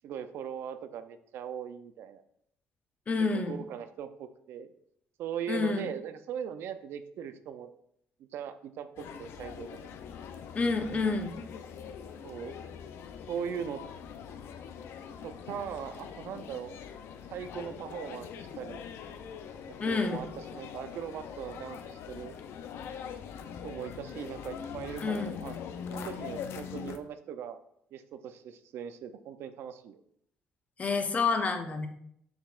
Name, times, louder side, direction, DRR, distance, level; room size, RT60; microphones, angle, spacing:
voice 1, 0.0-2.2 3.2-4.7 5.2-7.7 8.2-9.7 12.2-12.6 13.3-13.8 15.2-16.7 17.3-18.8 19.7-22.3 23.6-25.6 25.9-27.6 27.9-30.0, right 8 dB, 70° right, 10 dB, 0.5 m, -40 dB
voice 2, 3.1-3.6 5.5-5.9 10.5-11.4 19.8-20.2 25.0-25.4 30.8-31.9, left 4 dB, 35° left, 6 dB, 0.9 m, -29 dB
sound 1, 9.0-27.0, left 7 dB, 70° left, 0.6 m, -43 dB
7.1 x 5.8 x 2.5 m, 0.72 s
cardioid pair, 95°, 4 cm